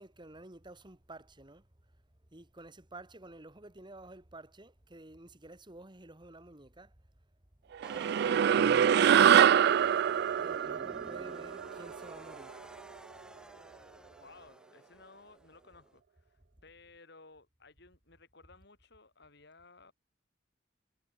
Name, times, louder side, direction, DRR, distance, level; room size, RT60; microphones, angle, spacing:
voice 1, 0.0-1.7 2.3-6.9 7.9-9.7 10.3-12.6, right 2 dB, 25° right, 2.0 m, -51 dB
sound 1, 7.8-16.0, right 1 dB, 5° right, 2.2 m, -52 dB
sound 2, 7.8-12.5, right 9 dB, 60° right, 0.3 m, -25 dB
voice 2, 14.2-19.9, left 3 dB, 60° left, 5.3 m, -58 dB
head